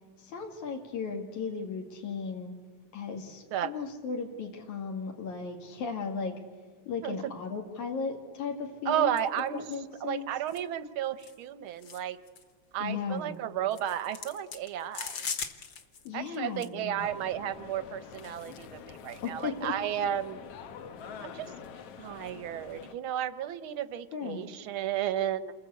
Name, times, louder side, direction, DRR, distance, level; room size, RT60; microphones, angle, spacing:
voice 1, 0.2-2.5 2.9-6.3 6.9-9.2 9.5-10.3 12.8-13.4 16.1-17.1 19.2-19.8 24.1-24.5, left 5 dB, 80° left, 1 dB, 3.5 m, -36 dB
voice 2, 8.9-9.6 10.0-12.2 12.7-15.2 16.1-20.4 21.2-21.5 22.0-25.5, right 10 dB, 65° right, 12 dB, 1.4 m, -33 dB
sound 1, 9.2-9.4 9.7-9.8 10.5-10.6 11.2-11.4 11.8-12.0 12.3-12.4 13.7-16.1 16.3-16.7, left 6 dB, 50° left, 1.9 m, -39 dB
sound 2, 17.0-22.9, left 6 dB, 65° left, 1.9 m, -46 dB
28.5 x 20.5 x 8.4 m, 1.5 s
omnidirectional pair, 3.3 m